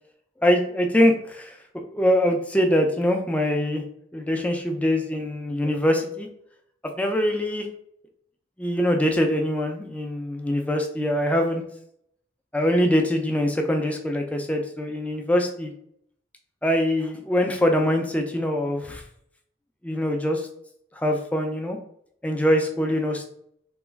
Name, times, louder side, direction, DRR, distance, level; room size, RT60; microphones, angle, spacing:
voice 1, 0.4-3.8 4.1-6.3 6.8-7.7 8.6-11.6 12.5-15.7 16.6-19.0 19.8-20.5 20.9-21.8 22.2-23.3, equal, 10° left, 3 dB, 0.4 m, -23 dB
2.9 x 2.3 x 3.4 m, 0.70 s
head